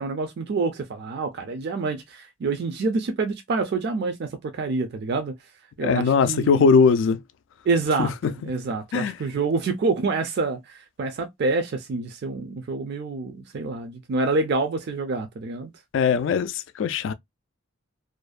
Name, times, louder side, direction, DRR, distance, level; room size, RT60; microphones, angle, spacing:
voice 1, 0.0-5.3 5.8-6.7 7.7-8.1 8.4-15.7, right 3 dB, 55° right, 0.4 m, -27 dB
voice 2, 5.8-7.2 8.0-8.5 8.9-9.2 15.9-17.1, left 5 dB, 65° left, 0.3 m, -20 dB
2.5 x 2.1 x 2.3 m
head